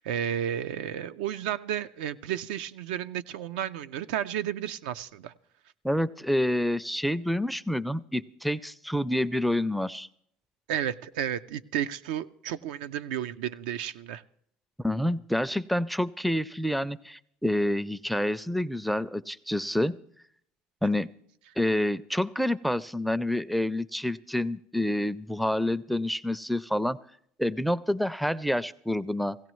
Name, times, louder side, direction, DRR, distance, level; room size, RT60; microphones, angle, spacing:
voice 1, 0.0-5.3 10.7-14.2, right 10 dB, 80° right, 11 dB, 0.4 m, -32 dB
voice 2, 5.8-10.1 14.8-20.0 20.8-21.1 21.6-27.0 27.4-29.4, left 1 dB, ahead, 19 dB, 0.4 m, -28 dB
16.5 x 16.5 x 3.1 m, 0.69 s
supercardioid pair, 80°, 5 cm